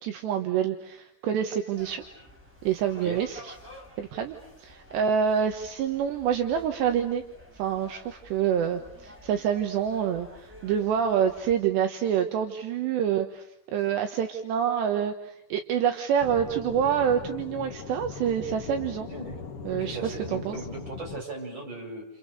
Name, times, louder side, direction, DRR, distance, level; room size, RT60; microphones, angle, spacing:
voice 1, 0.0-2.0 2.6-3.5 4.0-7.2 7.6-19.1 19.6-20.6, right 8 dB, 75° right, 5 dB, 3.4 m, -27 dB
sound 1, 1.8-11.6, left 1 dB, ahead, 5.7 m, -51 dB
Aircraft / Engine, 16.2-21.2, left 6 dB, 45° left, 2.0 m, -40 dB
voice 2, 19.1-22.1, right 3 dB, 25° right, -1 dB, 7.8 m, -38 dB
29.5 x 29.5 x 6.7 m, 0.73 s
omnidirectional pair, 5.2 m